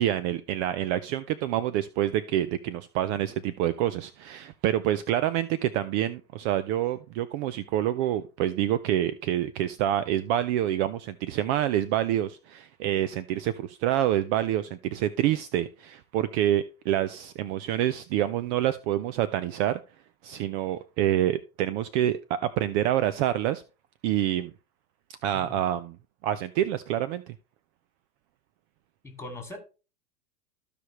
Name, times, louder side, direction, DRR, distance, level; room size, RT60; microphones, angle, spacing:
voice 1, 0.0-19.8 20.2-23.6 24.0-24.5 25.2-26.0 26.2-27.3, right 12 dB, 45° right, 0.6 m, -27 dB
voice 2, 29.0-29.6, left 2 dB, 5° left, 2.5 m, -40 dB
14.0 x 5.0 x 3.1 m
hypercardioid pair, 100°, 48 cm